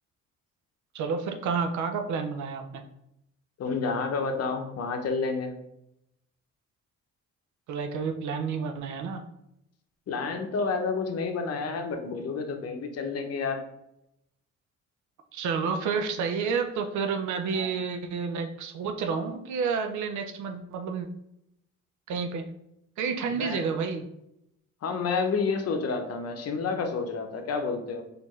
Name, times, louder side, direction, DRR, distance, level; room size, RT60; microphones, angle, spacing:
voice 1, 0.9-2.8 7.7-9.2 15.3-21.1 22.1-22.4 23.0-24.1, right 5 dB, 70° right, 6 dB, 0.5 m, -30 dB
voice 2, 3.6-5.5 10.1-13.6 17.5-17.7 23.3-23.6 24.8-28.0, left 4 dB, 55° left, 5 dB, 0.7 m, -30 dB
4.3 x 2.6 x 3.0 m, 0.82 s
cardioid pair, 90°, 30 cm